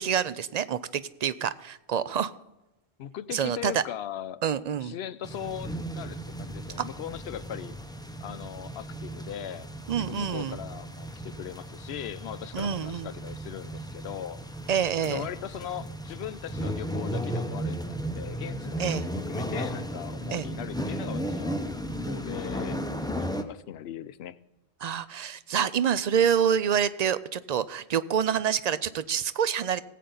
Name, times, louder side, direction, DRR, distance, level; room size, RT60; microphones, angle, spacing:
voice 1, 0.0-2.3 3.3-3.8 4.4-4.9 6.8-6.9 9.9-10.6 12.5-13.1 14.7-15.3 18.8-19.1 20.3-20.5 24.8-29.8, right 8 dB, 55° right, 15 dB, 0.5 m, -27 dB
voice 2, 3.0-4.4 4.8-7.8 8.2-9.7 10.0-14.4 15.0-21.6 22.0-22.8 23.1-24.4, left 10 dB, 80° left, 15 dB, 0.8 m, -39 dB
sound 1, 5.2-23.4, equal, 5° left, 0.6 m, -35 dB
18.0 x 8.4 x 3.9 m, 1.0 s
omnidirectional pair, 1.1 m